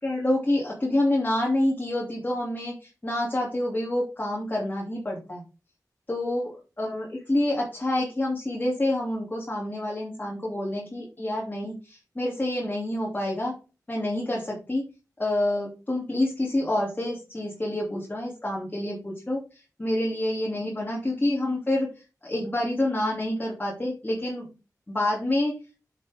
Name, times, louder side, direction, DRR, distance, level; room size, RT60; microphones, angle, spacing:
voice 1, 0.0-2.7 3.0-5.4 6.1-6.5 6.8-13.5 13.9-14.8 15.2-19.4 19.8-21.9 22.2-24.5 24.9-25.5, left 1 dB, 25° left, -4 dB, 2.7 m, -27 dB
8.0 x 6.7 x 3.5 m, 0.33 s
wide cardioid pair, 70°, 6 cm